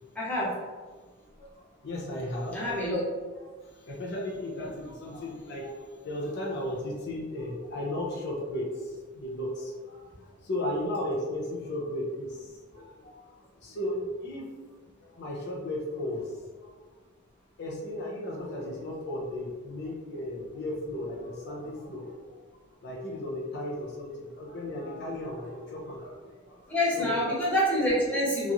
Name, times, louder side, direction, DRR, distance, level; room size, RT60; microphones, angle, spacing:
voice 1, 0.1-0.6 2.5-3.0 26.7-28.5, equal, 10° left, -8 dB, 0.9 m, -26 dB
voice 2, 1.4-2.7 3.5-13.2 13.6-14.5 15.0-16.8 17.6-22.4 22.8-27.2, left 1 dB, 60° left, -2 dB, 0.5 m, -35 dB
2.9 x 2.6 x 2.4 m, 1.4 s
head